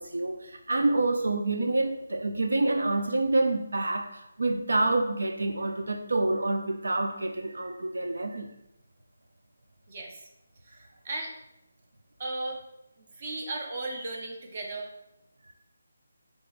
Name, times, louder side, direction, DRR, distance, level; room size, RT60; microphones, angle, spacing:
voice 1, 0.0-8.5, right 2 dB, 90° right, 5 dB, 0.4 m, -27 dB
voice 2, 9.9-10.3 10.6-11.3 12.2-12.6 13.0-14.9, right 2 dB, 30° right, 2 dB, 0.6 m, -36 dB
4.6 x 3.8 x 2.5 m, 0.85 s
hypercardioid pair, 175°, 0 cm